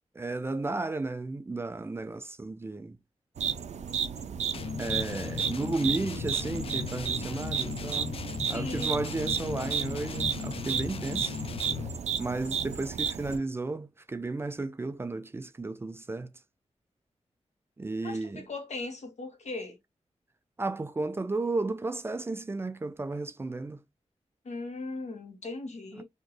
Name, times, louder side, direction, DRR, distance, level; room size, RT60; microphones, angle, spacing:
voice 1, 0.1-3.0 4.8-8.2 8.5-11.4 12.2-16.3 17.8-18.5 20.6-23.8 25.9-26.0, right 3 dB, 20° right, 0.4 m, -33 dB
sound 1, 3.4-13.4, right 7 dB, 85° right, 0.4 m, -33 dB
sound 2, 4.5-12.0, left 7 dB, 55° left, 0.4 m, -37 dB
voice 2, 8.5-8.9 11.7-11.8 18.0-18.2 18.5-19.8 24.4-26.0, left 3 dB, 90° left, 1.6 m, -38 dB
4.3 x 2.9 x 3.0 m
wide cardioid pair, 180°, 11 cm